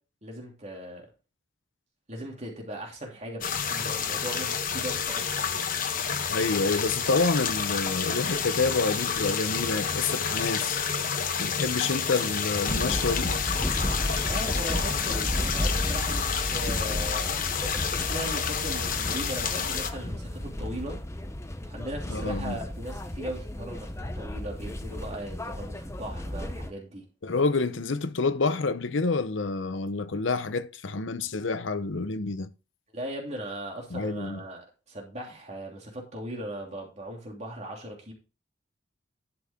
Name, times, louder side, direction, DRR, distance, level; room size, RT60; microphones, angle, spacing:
voice 1, 0.2-1.1 2.1-5.2 14.1-17.3 17.9-21.0 21.6-27.0 32.9-38.1, right 1 dB, 35° right, 3.0 m, -38 dB
sound 1, 3.4-19.9, left 6 dB, 45° left, 1.1 m, -29 dB
voice 2, 6.3-10.8 11.4-13.4 22.1-22.6 27.2-32.5 33.9-34.4, left 3 dB, 85° left, 0.8 m, -28 dB
sound 2, 12.7-26.7, left 1 dB, 15° left, 0.7 m, -33 dB
11.5 x 6.0 x 3.7 m
head